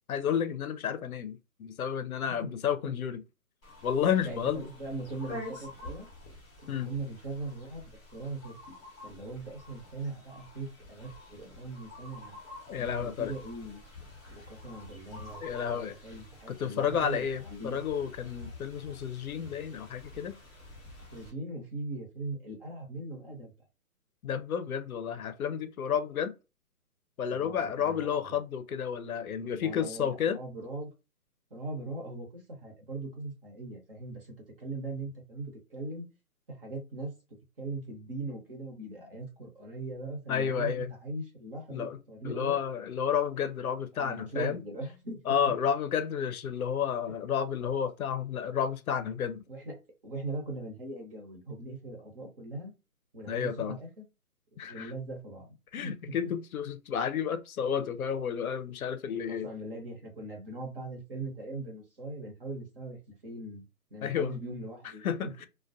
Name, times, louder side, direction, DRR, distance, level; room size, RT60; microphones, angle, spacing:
voice 1, 0.1-3.2 3.8-4.7 6.7-6.9 12.7-13.3 15.4-16.0 16.5-20.4 24.2-26.3 27.2-30.4 40.3-40.9 41.7-42.0 42.2-44.6 45.3-49.4 53.3-53.8 54.6-54.9 55.7-59.5 64.0-64.4 65.0-65.5, left 8 dB, 70° left, 0.5 m, -31 dB
sound 1, 3.6-21.3, left 2 dB, 5° left, 0.6 m, -48 dB
voice 2, 4.2-6.1 6.6-8.6 9.0-12.4 12.8-13.8 14.3-17.8 21.1-23.5 27.4-28.4 29.6-30.9 31.5-36.1 36.5-37.2 37.6-42.6 43.9-45.4 49.5-52.7 53.1-54.1 54.6-55.9 59.3-63.0 63.2-63.6 63.9-65.5, right 2 dB, 40° right, 0.9 m, -40 dB
2.2 x 2.2 x 2.5 m
hypercardioid pair, 160°, 45 cm